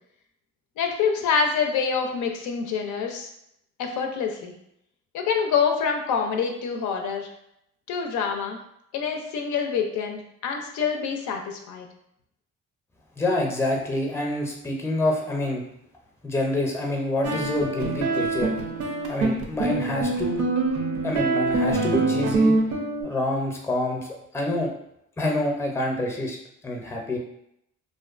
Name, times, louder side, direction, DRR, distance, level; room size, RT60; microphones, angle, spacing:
voice 1, 0.8-3.3 3.8-4.5 5.1-7.3 7.9-8.6 8.9-11.9, left 6 dB, 75° left, 3 dB, 0.5 m, -26 dB
voice 2, 13.2-15.6 16.2-18.5 19.1-20.4 21.0-22.5 23.0-24.1 24.3-24.7 25.2-26.4 26.6-27.2, left 1 dB, 10° left, 0 dB, 0.5 m, -27 dB
sound 1, 17.2-23.0, right 3 dB, 75° right, 0.6 m, -24 dB
2.5 x 2.2 x 2.4 m, 0.76 s
cardioid pair, 90°, 30 cm